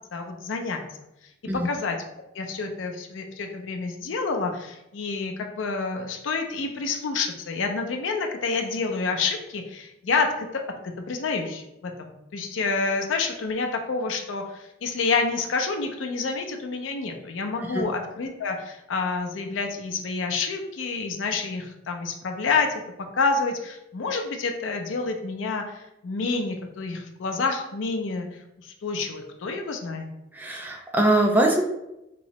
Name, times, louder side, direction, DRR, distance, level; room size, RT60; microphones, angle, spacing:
voice 1, 0.1-0.8 1.5-2.0 2.3-10.6 11.1-22.8 23.2-30.1, left 4 dB, 85° left, 4 dB, 0.4 m, -28 dB
voice 2, 30.3-31.6, right 1 dB, 10° right, 1 dB, 0.3 m, -22 dB
3.0 x 2.7 x 3.0 m, 0.89 s
head